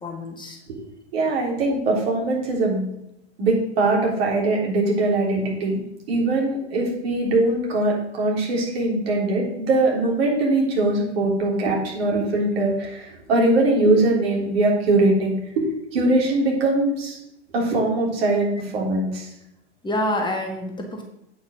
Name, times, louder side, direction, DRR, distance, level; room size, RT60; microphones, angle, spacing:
voice 1, 0.0-0.6 19.8-21.0, left 1 dB, 15° left, 2 dB, 1.4 m, -27 dB
voice 2, 1.1-2.8 3.4-5.8 6.1-17.2 17.5-19.3, right 2 dB, 60° right, -1 dB, 3.8 m, -21 dB
8.6 x 5.6 x 6.4 m, 0.82 s
figure-of-eight pair, 95°, 34 cm